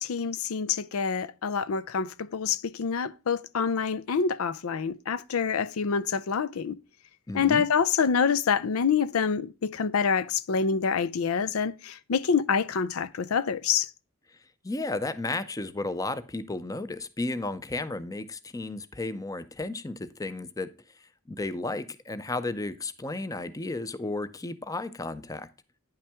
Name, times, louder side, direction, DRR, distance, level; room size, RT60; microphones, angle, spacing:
voice 1, 0.0-6.8 7.3-13.9, left 6 dB, 90° left, 0.5 m, -26 dB
voice 2, 7.3-7.6 14.6-20.7 21.3-25.5, left 2 dB, 15° left, 0.5 m, -33 dB
10.0 x 5.7 x 3.4 m
head